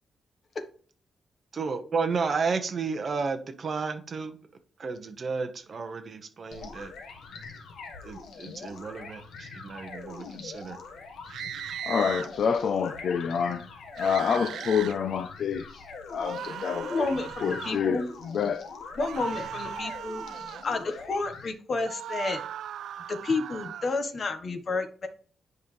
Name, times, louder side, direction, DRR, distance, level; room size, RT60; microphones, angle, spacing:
voice 1, 1.5-4.4 4.8-6.9 8.0-10.8, right 4 dB, 35° right, 1.1 m, -32 dB
sound 1, 6.5-21.5, left 4 dB, 75° left, 1.4 m, -43 dB
sound 2, 11.3-12.3 14.0-15.0 16.2-17.8 19.0-20.7 21.8-23.9, right 9 dB, 80° right, 0.3 m, -38 dB
voice 2, 11.6-13.7 14.0-15.8 16.1-17.1 17.4-18.7, left 6 dB, 55° left, 0.5 m, -28 dB
voice 3, 16.9-18.1 19.0-20.2 20.6-22.4 23.1-25.1, left 3 dB, 35° left, 1.1 m, -30 dB
9.6 x 5.4 x 3.2 m
wide cardioid pair, 165°, 0 cm